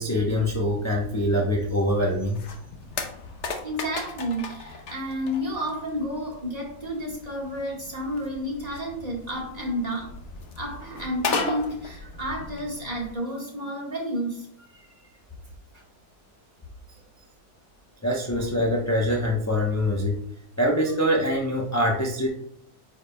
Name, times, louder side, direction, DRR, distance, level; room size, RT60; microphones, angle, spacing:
voice 1, 0.0-2.4 18.0-20.2 20.6-22.3, equal, 15° left, -2 dB, 0.6 m, -24 dB
sound 1, 2.0-13.1, left 4 dB, 55° left, 1.0 m, -36 dB
voice 2, 3.6-10.1 10.6-14.5 15.7-15.8, equal, 25° right, -2 dB, 1.6 m, -31 dB
8.9 x 5.2 x 2.2 m, 0.65 s
omnidirectional pair, 1.6 m